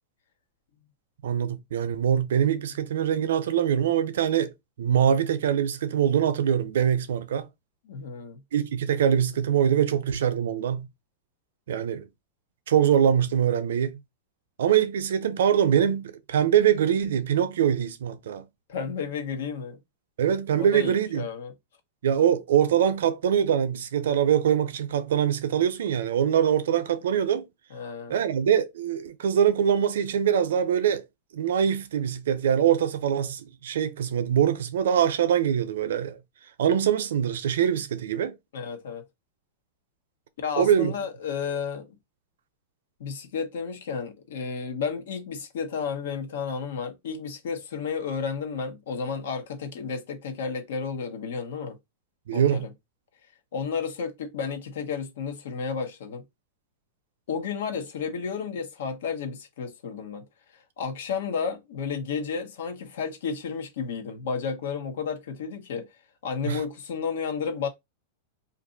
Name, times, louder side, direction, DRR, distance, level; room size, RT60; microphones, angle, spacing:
voice 1, 1.2-4.5 4.8-7.5 8.5-10.9 11.7-12.1 12.7-14.0 14.6-18.5 20.2-21.3 22.0-27.5 28.1-31.0 31.3-36.2 36.6-38.3 40.6-40.9 52.3-52.7 66.5-66.6, right 9 dB, 85° right, 0.6 m, -23 dB
voice 2, 7.9-8.4 18.7-19.8 20.6-21.5 27.7-28.2 38.5-39.0 40.4-41.9 43.0-51.8 52.3-52.7 53.5-56.2 57.3-60.2 60.8-65.9 66.2-67.7, left 6 dB, 80° left, 1.1 m, -32 dB
2.6 x 2.5 x 3.9 m
supercardioid pair, 155°, 0 cm